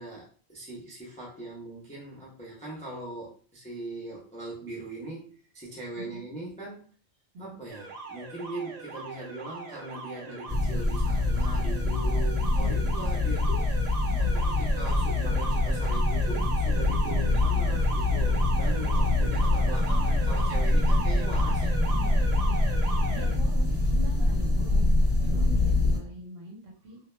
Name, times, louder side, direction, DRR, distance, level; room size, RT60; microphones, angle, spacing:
voice 1, 0.0-6.9 7.4-13.7 14.2-21.7, right 2 dB, 10° left, -5 dB, 0.4 m, -40 dB
Alarm, 7.7-23.4, right 4 dB, 85° right, 0.3 m, -38 dB
sound 1, 10.5-26.0, left 2 dB, 30° right, 0.7 m, -25 dB
voice 2, 12.4-12.9 14.1-14.4 17.1-17.4 18.7-19.3 21.8-22.7 23.1-27.0, right 1 dB, 60° right, -1 dB, 0.9 m, -43 dB
2.2 x 2.1 x 3.1 m, 0.42 s
omnidirectional pair, 1.2 m